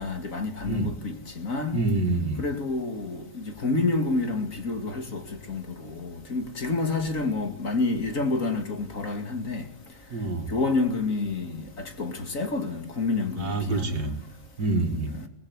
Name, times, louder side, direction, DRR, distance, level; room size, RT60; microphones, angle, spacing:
voice 1, 0.0-1.8 2.4-5.2 5.5-9.6 10.5-14.0 15.2-15.3, left 3 dB, 55° left, 2.8 m, -28 dB
voice 2, 1.7-2.4 10.1-10.5 13.4-14.1 14.6-15.1, right 3 dB, 75° right, 3.0 m, -26 dB
24.0 x 18.5 x 9.6 m
omnidirectional pair, 1.7 m